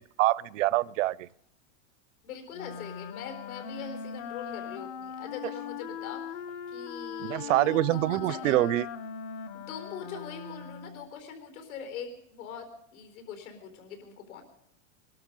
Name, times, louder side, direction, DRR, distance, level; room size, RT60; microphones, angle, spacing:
voice 1, 0.2-1.3 7.2-8.9, right 17 dB, 65° right, 22 dB, 0.6 m, -25 dB
voice 2, 2.2-6.4 6.7-8.6 9.7-14.4, left 6 dB, 85° left, 6 dB, 4.4 m, -42 dB
Wind instrument woodwind instrument, 2.5-11.1, left 7 dB, 35° left, 0.6 m, -40 dB
21.5 x 12.5 x 5.3 m, 0.77 s
supercardioid pair, 180°, 41 cm